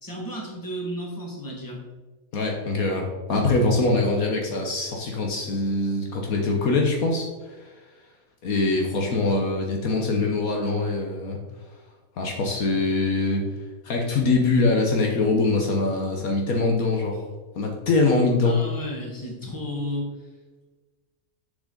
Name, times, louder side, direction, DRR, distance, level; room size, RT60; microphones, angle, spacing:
voice 1, 0.0-1.8 18.4-20.0, equal, 15° left, -2 dB, 1.7 m, -33 dB
voice 2, 2.3-7.7 8.4-11.4 12.2-13.4 13.8-17.2 17.6-18.6, left 3 dB, 65° left, 1 dB, 1.4 m, -23 dB
6.8 x 6.5 x 3.9 m, 1.3 s
omnidirectional pair, 1.6 m